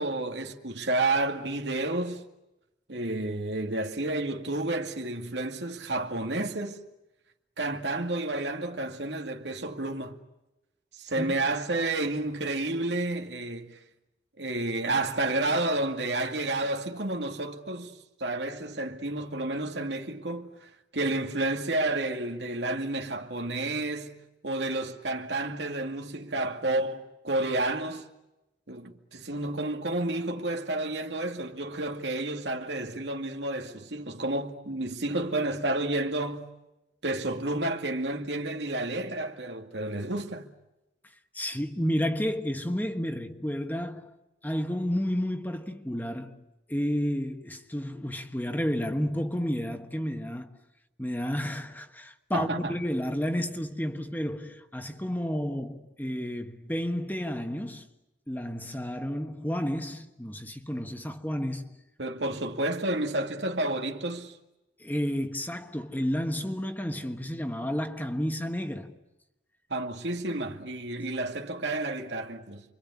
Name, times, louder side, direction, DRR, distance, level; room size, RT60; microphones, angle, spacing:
voice 1, 0.0-2.3 2.9-6.8 7.6-10.2 10.9-13.8 14.4-24.2 24.4-28.1 28.7-36.5 37.0-40.5 52.3-52.7 62.0-64.4 69.7-72.6, right 2 dB, 85° right, 2.2 m, -30 dB
voice 2, 41.3-44.1 44.4-46.4 46.7-50.5 51.0-57.9 58.3-61.7 64.8-69.0, equal, 10° left, 1.4 m, -31 dB
29.0 x 24.0 x 8.4 m
head